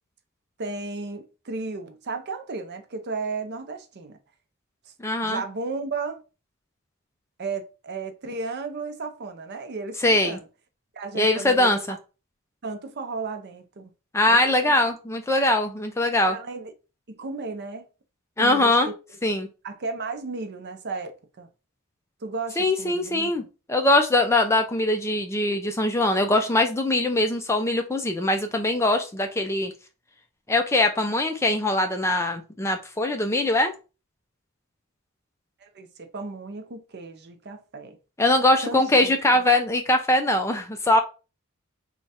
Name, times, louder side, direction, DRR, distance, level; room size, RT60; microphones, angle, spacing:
voice 1, 0.6-4.2 5.2-6.2 7.4-10.4 10.9-12.0 12.6-13.9 14.2-14.7 16.2-16.7 17.1-17.9 18.4-18.9 19.6-21.5 22.2-23.5 35.6-38.0 38.6-39.4, right 3 dB, 50° right, 0.6 m, -34 dB
voice 2, 5.0-5.4 10.0-10.4 11.1-12.0 14.1-16.4 18.4-18.9 19.2-19.5 22.6-23.4 23.7-29.7 30.5-33.7 38.2-41.0, left 1 dB, 15° left, 0.4 m, -22 dB
3.2 x 2.4 x 4.1 m
head